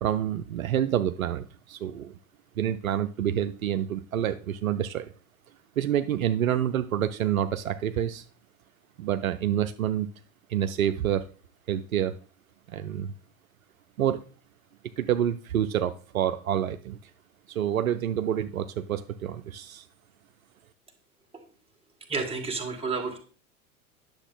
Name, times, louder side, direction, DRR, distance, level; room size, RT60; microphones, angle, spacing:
voice 1, 0.0-2.1 2.6-5.1 5.8-8.2 9.0-10.1 10.5-11.2 11.7-12.1 12.7-13.1 14.0-14.2 15.0-17.0 17.5-19.9, right 10 dB, 70° right, 9 dB, 0.7 m, -27 dB
voice 2, 22.1-23.2, right 4 dB, 15° right, 2 dB, 2.0 m, -30 dB
9.8 x 6.9 x 3.9 m, 0.39 s
figure-of-eight pair, 85°, 43 cm